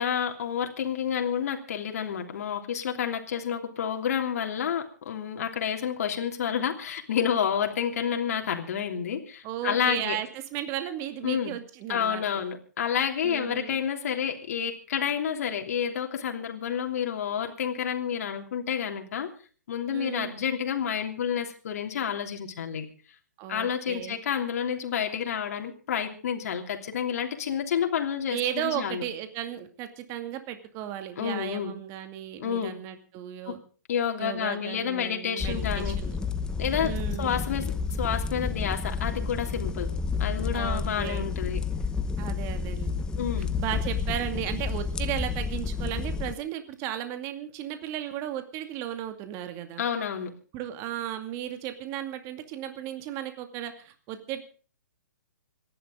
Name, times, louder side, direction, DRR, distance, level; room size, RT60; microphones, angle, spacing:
voice 1, 0.0-10.2 11.2-11.5 11.9-19.3 19.7-22.8 23.5-29.0 31.2-31.8 32.4-32.8 33.5-33.6 33.9-36.0 36.6-36.9 37.2-37.7 38.0-39.9 40.2-41.6 43.2-43.5 49.8-50.3, left 8 dB, 55° left, 3 dB, 3.1 m, -29 dB
voice 2, 9.4-12.4 13.2-13.8 19.9-20.3 23.4-24.2 28.3-33.6 34.2-36.3 36.8-37.3 40.5-41.3 42.2-43.0 43.6-49.8 50.5-54.4, right 11 dB, 30° right, 7 dB, 2.3 m, -35 dB
sound 1, 35.4-46.4, left 5 dB, 10° left, 0.8 m, -30 dB
26.5 x 11.5 x 3.8 m, 0.40 s
hypercardioid pair, 130°, 10 cm